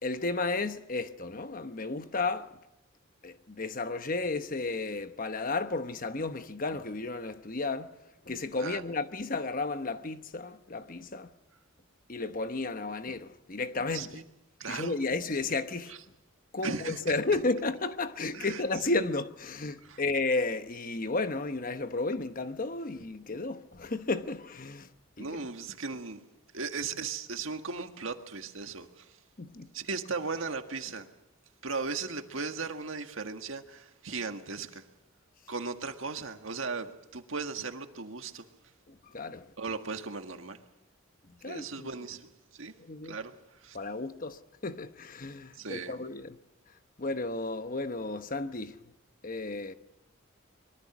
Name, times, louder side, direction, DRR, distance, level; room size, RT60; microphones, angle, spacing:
voice 1, 0.0-2.5 3.2-7.9 8.3-11.3 12.1-14.2 14.7-15.9 16.5-24.9 25.2-25.3 29.4-29.7 38.9-39.4 41.4-41.9 42.8-43.2 43.7-46.4 47.0-48.8 49.2-49.7, left 3 dB, 40° left, 1.0 m, -33 dB
voice 2, 13.9-14.2 14.6-15.0 15.9-16.0 16.6-17.1 18.3-18.6 19.8-20.0 25.2-26.2 26.5-29.2 29.7-31.1 31.6-34.8 35.5-38.4 39.6-40.6 41.5-42.7 43.0-43.8 45.5-45.9, right 4 dB, 70° right, 1.7 m, -37 dB
24.5 x 22.5 x 6.1 m
head